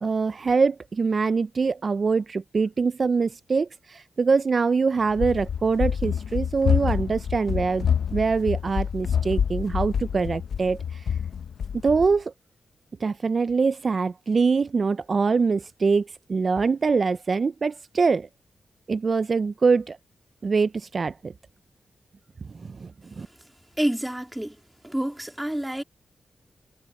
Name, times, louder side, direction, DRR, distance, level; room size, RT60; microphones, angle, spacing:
voice 1, 0.0-11.1 11.8-12.3 13.0-18.3 18.9-20.0 20.4-21.3 22.5-22.9 23.2-23.3, right 4 dB, 50° right, 0.4 m, -24 dB
Run, 5.1-12.1, left 7 dB, 80° left, 0.6 m, -27 dB
voice 2, 23.8-24.6 24.8-25.8, right 1 dB, 10° right, 2.4 m, -28 dB
cardioid pair, 75°, 0 cm